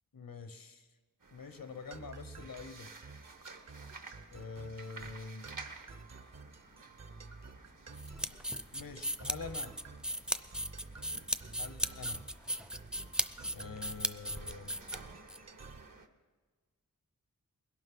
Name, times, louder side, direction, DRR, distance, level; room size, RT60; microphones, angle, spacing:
voice 1, 0.1-0.9 1.3-2.9 4.3-5.5 8.7-9.8 11.6-12.2 13.5-14.8, left 4 dB, 80° left, 10 dB, 1.0 m, -45 dB
sound 1, 1.2-16.1, right 3 dB, 65° right, 1.2 m, -54 dB
sound 2, 1.9-16.0, right 4 dB, 50° right, 0.8 m, -51 dB
sound 3, 8.0-15.4, equal, ahead, 0.5 m, -36 dB
20.5 x 11.5 x 3.9 m, 1.4 s
wide cardioid pair, 55°, 34 cm